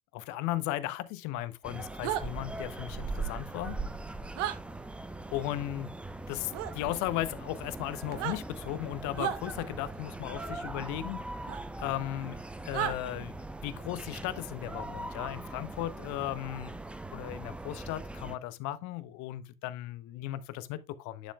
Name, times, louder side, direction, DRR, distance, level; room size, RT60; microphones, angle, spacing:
voice 1, 0.1-3.8 5.3-5.9 6.3-11.2 11.8-12.4 12.6-13.4 13.6-16.7 17.1-21.3, left 14 dB, 45° left, 0.8 m, -36 dB
sound 1, 1.6-18.4, right 2 dB, 5° right, 0.3 m, -41 dB
sound 2, 2.0-2.2 4.4-4.6 6.5-6.7 8.1-8.4 9.2-9.4 11.5-11.6 12.7-13.0, right 11 dB, 60° right, 0.9 m, -32 dB
9.2 x 7.0 x 2.3 m
figure-of-eight pair, 75°, 40 cm